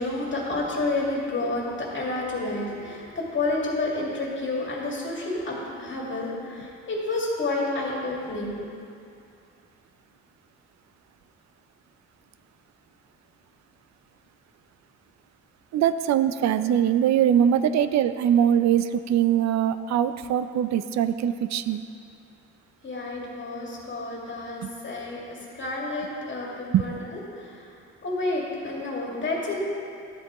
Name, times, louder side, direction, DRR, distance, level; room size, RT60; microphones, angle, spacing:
voice 1, 0.0-8.7 22.8-27.0 27.4-27.7 28.0-29.7, left 2 dB, 40° left, -3 dB, 2.1 m, -30 dB
voice 2, 15.7-21.8 24.6-24.7 26.7-26.9, right 9 dB, 65° right, 12 dB, 0.5 m, -22 dB
12.5 x 8.1 x 3.0 m, 2.5 s
cardioid pair, 90°, 30 cm